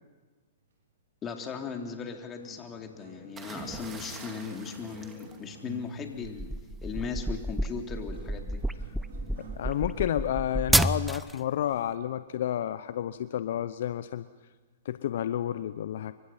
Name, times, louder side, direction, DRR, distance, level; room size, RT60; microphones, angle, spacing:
voice 1, 1.2-6.5 6.8-8.6, left 6 dB, 25° left, 3 dB, 3.4 m, -38 dB
sound 1, 2.4-11.9 12.6-12.8 13.5-13.6, right 3 dB, 70° right, 6.5 m, -50 dB
sound 2, 3.4-6.1 7.3-7.6, right 4 dB, 20° right, 3.2 m, -45 dB
sound 3, 6.2-11.4, right 1 dB, ahead, 0.7 m, -29 dB
voice 2, 9.4-14.3 14.8-16.1, left 11 dB, 65° left, 13 dB, 0.8 m, -30 dB
28.5 x 24.5 x 5.8 m, 1.3 s
hypercardioid pair, 120°, 0 cm